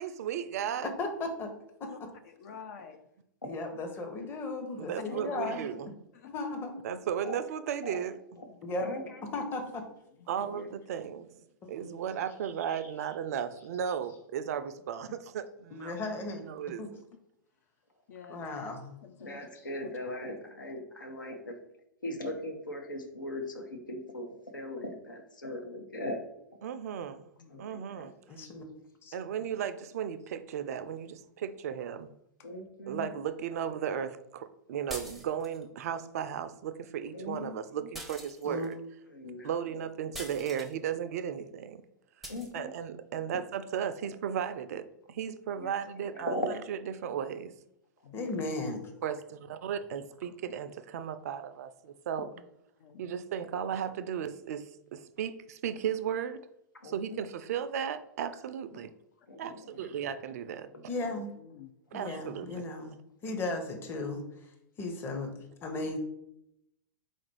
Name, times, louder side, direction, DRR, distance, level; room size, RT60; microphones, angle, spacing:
voice 1, 0.0-0.9 4.8-6.0 6.8-8.2 10.3-11.3 11.7-16.0 16.4-16.8 26.6-27.3 27.6-28.1 29.1-32.1 32.9-38.8 39.4-41.8 42.5-46.4 46.7-47.5 49.0-52.3 53.0-56.5 56.8-58.9 59.4-60.7 61.9-62.7, right 8 dB, 50° right, 11 dB, 0.4 m, -35 dB
voice 2, 0.8-1.5 1.8-2.1 3.4-5.8 6.2-6.8 8.6-8.9 9.3-9.8 11.6-11.9 15.7-16.5 16.8-16.9 18.3-19.0 28.3-28.6 29.0-29.1 38.4-38.7 48.1-48.8 60.9-61.3 61.9-63.0 63.2-64.2 64.8-65.3 65.6-66.0, left 2 dB, 20° left, 3 dB, 0.8 m, -36 dB
voice 3, 2.2-3.0 5.3-5.4 6.1-6.3 8.5-8.6 9.3-9.4 11.9-12.0 18.1-18.5 19.0-19.5 19.8-19.9 20.6-20.8 27.4-27.6 48.0-48.7 52.8-53.0 59.4-59.5 61.1-61.7, left 7 dB, 55° left, 7 dB, 0.5 m, -49 dB
voice 4, 8.8-9.2 10.5-10.7 19.2-21.6 22.0-26.2 27.5-28.1 29.3-29.4 32.4-33.1 37.1-37.5 37.8-37.9 39.1-39.5 42.3-42.7 45.6-45.7 46.1-46.5 56.8-57.2 59.3-59.9 60.6-61.1, left 1 dB, 80° left, 4 dB, 0.9 m, -39 dB
sound 1, 34.9-35.6 37.9-38.7 40.1-40.7 42.2-42.5, right 1 dB, ahead, 0.6 m, -43 dB
4.1 x 2.5 x 4.4 m, 0.79 s
figure-of-eight pair, 100°, 10 cm